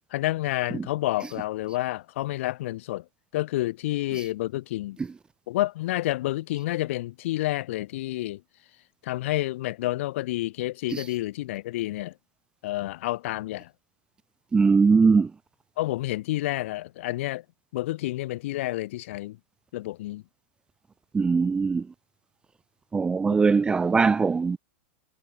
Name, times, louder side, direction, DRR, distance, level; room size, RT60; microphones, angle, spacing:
voice 1, 0.1-3.0 3.3-5.0 5.5-8.4 9.0-12.1 12.6-13.7 15.8-17.4 17.7-19.4 19.7-20.2, left 16 dB, 65° left, 3.9 m, -29 dB
voice 2, 14.5-15.3 21.1-21.8 22.9-24.6, right 4 dB, 10° right, 1.0 m, -21 dB
supercardioid pair, 140°, 7 cm